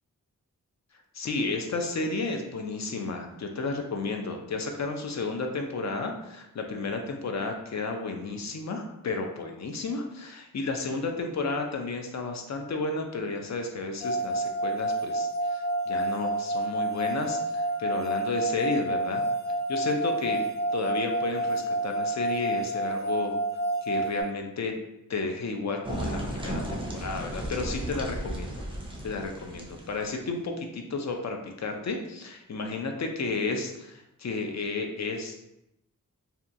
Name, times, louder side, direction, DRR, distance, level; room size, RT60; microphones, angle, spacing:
voice 1, 1.1-19.2 19.7-23.3 23.8-24.7 25.1-28.6 29.0-35.3, left 3 dB, 55° left, 4 dB, 0.4 m, -32 dB
sound 1, 14.0-24.2, right 1 dB, 80° left, 1.1 m, -29 dB
sound 2, 25.8-30.2, right 1 dB, 15° right, 0.4 m, -35 dB
2.8 x 2.2 x 2.5 m, 0.87 s
wide cardioid pair, 90°, 34 cm